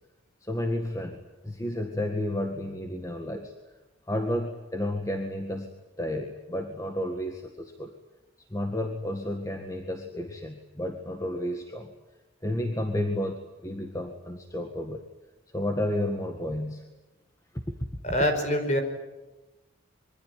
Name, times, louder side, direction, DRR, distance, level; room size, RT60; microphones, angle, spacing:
voice 1, 0.4-3.5 4.1-5.7 6.0-7.9 8.5-11.9 12.4-15.1 15.5-16.8 17.5-17.8, left 1 dB, 15° left, 5 dB, 1.8 m, -31 dB
voice 2, 18.0-18.8, equal, 35° left, 7 dB, 5.1 m, -24 dB
26.0 x 24.0 x 9.4 m, 1.0 s
head